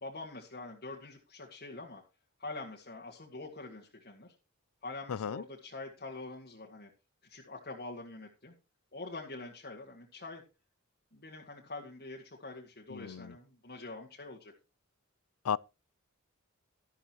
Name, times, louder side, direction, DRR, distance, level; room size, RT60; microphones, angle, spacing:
voice 1, 0.0-2.0 2.4-4.3 4.8-6.9 7.3-8.5 8.9-10.4 11.1-14.5, left 2 dB, 45° left, 1.9 m, -45 dB
voice 2, 5.1-5.4 12.9-13.3 15.4-15.6, left 7 dB, 85° left, 0.4 m, -34 dB
13.0 x 11.5 x 3.0 m
head